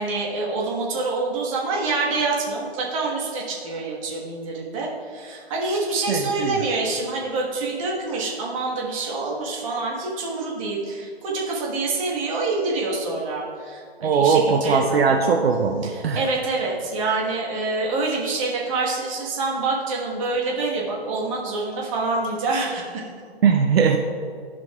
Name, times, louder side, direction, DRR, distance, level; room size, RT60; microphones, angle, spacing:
voice 1, 0.0-15.2 15.8-23.0, right 3 dB, 30° right, -3 dB, 1.4 m, -26 dB
voice 2, 6.1-6.6 14.0-16.2 23.4-24.0, right 5 dB, 70° right, 3 dB, 0.7 m, -20 dB
13.5 x 5.2 x 2.4 m, 2.2 s
hypercardioid pair, 155°, 32 cm